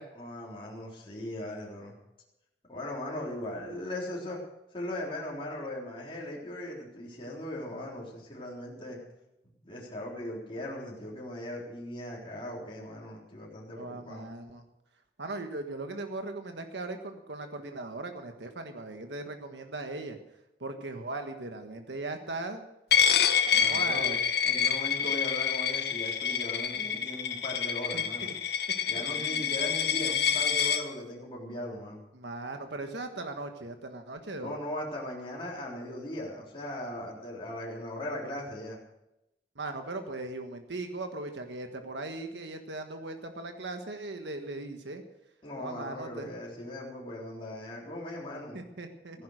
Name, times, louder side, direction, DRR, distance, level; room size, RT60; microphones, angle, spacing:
voice 1, 0.1-2.0 2.7-4.4 4.7-9.0 9.6-14.3 23.5-24.2 24.4-28.3 28.9-32.0 34.4-38.8 45.4-48.6 49.1-49.2, left 1 dB, 30° left, -4 dB, 3.8 m, -39 dB
voice 2, 13.7-14.6 15.2-20.2 20.6-22.6 23.6-24.2 27.9-28.3 29.1-29.4 32.1-34.5 39.6-45.0 45.6-46.3 48.5-49.2, right 2 dB, 85° right, 6 dB, 1.5 m, -38 dB
Coin (dropping), 22.9-30.8, left 7 dB, 65° left, 1.2 m, -27 dB
15.5 x 11.0 x 6.5 m, 0.90 s
head